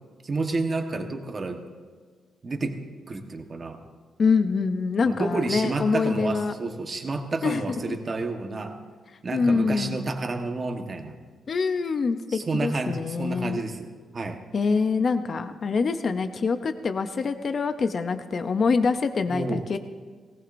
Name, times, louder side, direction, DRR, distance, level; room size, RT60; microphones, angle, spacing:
voice 1, 0.2-1.6 2.4-2.8 3.1-3.8 5.0-8.8 9.2-11.1 12.3-13.9 14.1-14.4 19.3-19.8, right 3 dB, 30° right, 5 dB, 1.2 m, -30 dB
voice 2, 4.2-6.5 7.4-7.6 7.9-8.0 9.3-10.0 11.5-13.6 14.5-19.8, left 4 dB, 40° left, 9 dB, 0.5 m, -25 dB
18.5 x 18.0 x 2.6 m, 1.5 s
cardioid pair, 150°, 0 cm